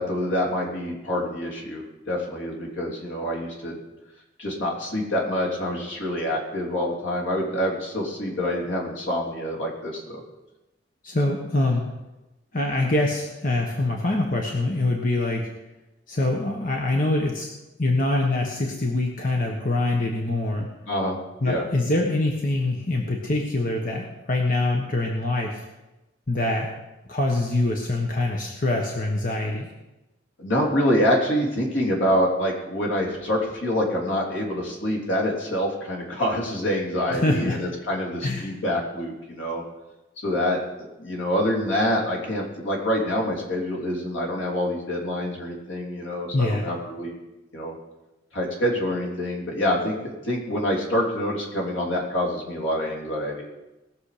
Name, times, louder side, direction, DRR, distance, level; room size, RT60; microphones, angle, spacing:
voice 1, 0.0-3.8 4.4-10.2 20.9-21.2 21.4-21.6 30.4-39.6 40.2-40.6 41.0-47.2 47.5-47.8 48.3-53.5, equal, 80° left, -2 dB, 3.2 m, -26 dB
voice 2, 11.0-11.8 12.5-15.5 16.1-17.5 17.8-20.7 21.4-25.6 26.3-26.7 27.1-29.7 37.1-37.6 38.2-38.5 46.3-46.7, left 2 dB, 45° left, 0 dB, 1.3 m, -24 dB
19.5 x 7.0 x 5.1 m, 1.0 s
head